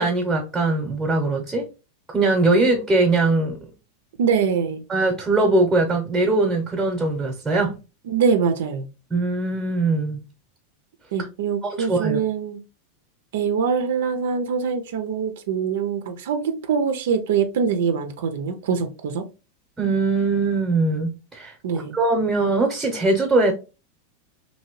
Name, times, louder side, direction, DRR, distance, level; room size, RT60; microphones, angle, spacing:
voice 1, 0.0-1.6 2.1-3.7 4.9-7.8 9.1-10.2 11.6-12.2 19.8-23.5, right 2 dB, 15° right, 0.8 m, -21 dB
voice 2, 4.2-4.8 8.1-8.9 11.1-12.6 13.3-19.2 21.6-22.0, right 6 dB, 75° right, 0.5 m, -23 dB
2.8 x 2.7 x 3.0 m
supercardioid pair, 130°, 0 cm